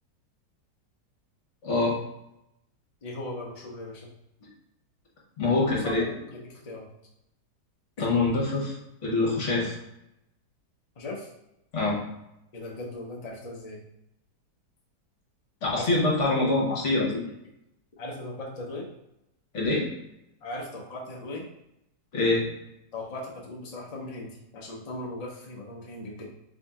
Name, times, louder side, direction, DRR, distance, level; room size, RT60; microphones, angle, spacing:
voice 1, 1.6-2.0 5.4-6.0 8.0-8.8 9.0-9.8 11.7-12.0 15.6-17.2 19.5-19.9 22.1-22.5, left 2 dB, 45° left, -4 dB, 1.3 m, -25 dB
voice 2, 3.0-4.1 5.6-6.9 8.0-8.1 9.5-9.7 11.0-11.3 12.5-13.8 15.7-16.5 17.1-17.2 18.0-18.9 20.4-21.5 22.9-26.3, left 2 dB, 90° left, -3 dB, 0.3 m, -38 dB
3.6 x 2.7 x 3.5 m, 0.85 s
omnidirectional pair, 1.9 m